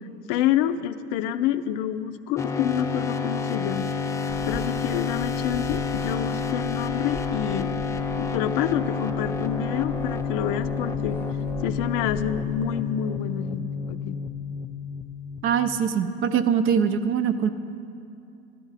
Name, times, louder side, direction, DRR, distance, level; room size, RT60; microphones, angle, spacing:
voice 1, 0.3-3.9 4.5-7.7 8.2-11.2 11.6-14.2, left 10 dB, 65° left, 11 dB, 0.5 m, -28 dB
sound 1, 2.4-15.9, left 5 dB, 10° left, 0.3 m, -29 dB
sound 2, 4.3-12.6, right 1 dB, 5° right, 0.8 m, -41 dB
voice 2, 15.4-17.5, right 7 dB, 45° right, 10 dB, 0.6 m, -23 dB
12.5 x 10.5 x 4.1 m, 2.6 s
supercardioid pair, 135°, 30 cm